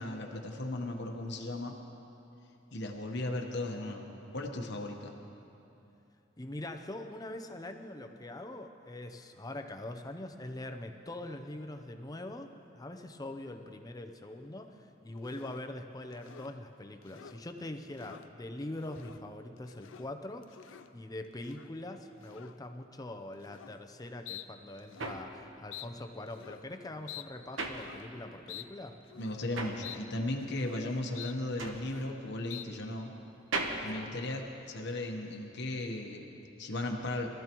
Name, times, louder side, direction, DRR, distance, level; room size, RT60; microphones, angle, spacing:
voice 1, 0.0-1.7 2.7-5.1 29.2-33.1 33.8-37.4, left 1 dB, 60° left, 2 dB, 1.1 m, -36 dB
voice 2, 6.4-29.0 33.9-34.1, left 1 dB, 20° left, 5 dB, 0.6 m, -43 dB
sound 1, 15.2-15.7 16.1-16.5 17.0-17.4 17.8-18.3 18.8-19.2 19.6-20.1 20.4-20.9 21.4-21.7 22.2-22.6 23.4-23.8 24.3-24.5 24.8-25.2 25.7-25.9 26.3-26.7 27.1-27.3 27.7-28.0 28.5-28.7 29.0-29.5 29.8-30.0 30.3-30.8 31.1-31.4 31.7-32.2 32.5-32.6, left 11 dB, 90° left, 0.5 m, -48 dB
sound 2, 24.2-28.5 28.8-35.0, right 3 dB, 85° right, 1.1 m, -40 dB
22.0 x 13.5 x 3.0 m, 2.8 s
head